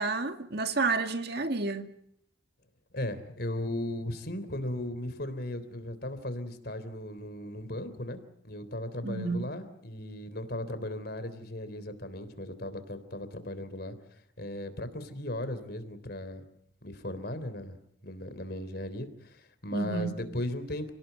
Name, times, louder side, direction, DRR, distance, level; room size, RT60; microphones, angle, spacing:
voice 1, 0.0-1.9 9.0-9.5 19.7-20.1, right 3 dB, 55° right, 2.1 m, -30 dB
voice 2, 2.9-8.2 8.4-14.0 14.4-16.4 16.8-17.8 18.0-20.9, left 1 dB, 50° left, 3.5 m, -37 dB
30.0 x 18.5 x 9.4 m
head